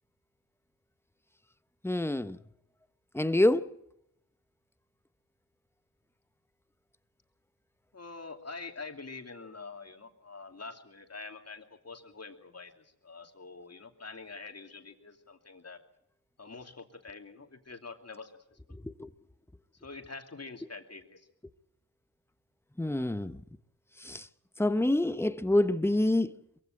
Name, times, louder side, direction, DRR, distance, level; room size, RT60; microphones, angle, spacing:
voice 1, 1.8-2.4 3.1-3.7 22.8-23.4 24.0-24.2 24.6-26.3, left 1 dB, 5° left, 0.9 m, -26 dB
voice 2, 7.9-15.8 16.4-18.8 19.7-21.3, left 4 dB, 40° left, 2.8 m, -46 dB
22.5 x 15.5 x 8.9 m
cardioid pair, 60°, 39 cm